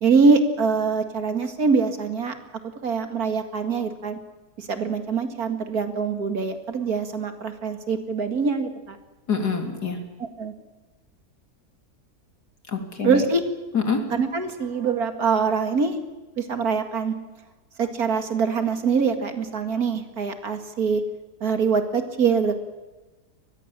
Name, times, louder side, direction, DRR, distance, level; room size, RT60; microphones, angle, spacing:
voice 1, 0.0-2.3 2.8-4.2 4.6-9.0 10.2-10.5 13.0-13.4 14.1-16.0 16.4-17.2 17.8-21.0 21.4-22.5, right 5 dB, 65° right, 7 dB, 2.4 m, -23 dB
voice 2, 9.3-10.0 12.7-13.3 13.7-14.0, left 5 dB, 80° left, 4 dB, 3.7 m, -25 dB
24.5 x 20.0 x 7.4 m, 1.2 s
omnidirectional pair, 1.7 m